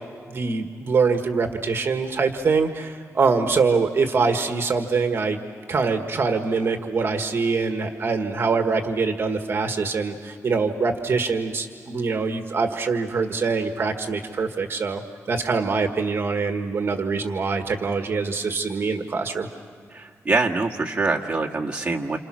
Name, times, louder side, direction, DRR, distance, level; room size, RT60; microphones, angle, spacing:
voice 1, 0.3-5.4 5.7-15.0 15.3-19.5, right 4 dB, 45° right, 5 dB, 1.6 m, -24 dB
voice 2, 19.9-22.2, right 3 dB, 25° right, -1 dB, 1.7 m, -24 dB
30.0 x 28.5 x 6.3 m, 2.1 s
wide cardioid pair, 145°, 5 cm